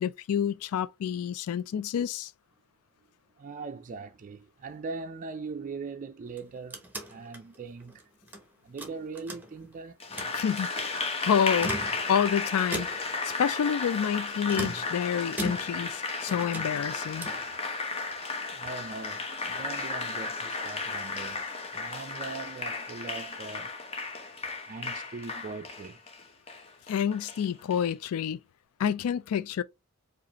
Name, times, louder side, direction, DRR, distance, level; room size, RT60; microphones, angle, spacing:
voice 1, 0.0-2.3 10.3-12.9 13.2-17.3 26.9-28.4 28.8-29.6, left 8 dB, 80° left, 0.3 m, -28 dB
voice 2, 3.4-6.8 7.1-8.0 8.6-10.0 10.4-10.5 18.5-23.7 24.6-26.0, right 4 dB, 40° right, 0.4 m, -40 dB
sound 1, 6.3-8.4 8.8-9.8 10.0-10.4 11.4-12.3 12.7-13.2 14.5-16.0 16.3-17.5, right 1 dB, 10° right, 0.9 m, -38 dB
Applause, 10.0-27.8, left 3 dB, 25° left, 0.8 m, -34 dB
4.9 x 2.5 x 2.8 m
head